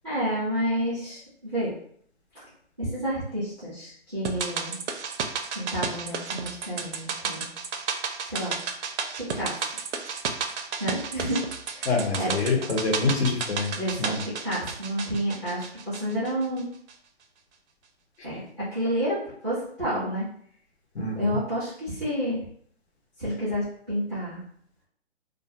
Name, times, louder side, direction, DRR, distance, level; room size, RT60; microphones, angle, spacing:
voice 1, 0.0-1.7 2.8-4.8 5.5-7.5 8.3-8.6 9.2-9.6 10.8-11.4 11.7-11.9 12.2-12.3 13.8-16.7 18.2-18.4 18.7-20.2 21.0-22.5 23.2-24.4, equal, 5° left, -14 dB, 0.5 m, -30 dB
sound 1, 4.2-16.6 16.9-17.0, right 5 dB, 75° right, 0.5 m, -33 dB
voice 2, 11.8-13.7 14.0-14.2 20.9-21.4, left 3 dB, 65° left, 0 dB, 0.9 m, -26 dB
2.3 x 2.3 x 2.8 m, 0.62 s
hypercardioid pair, 165°, 35 cm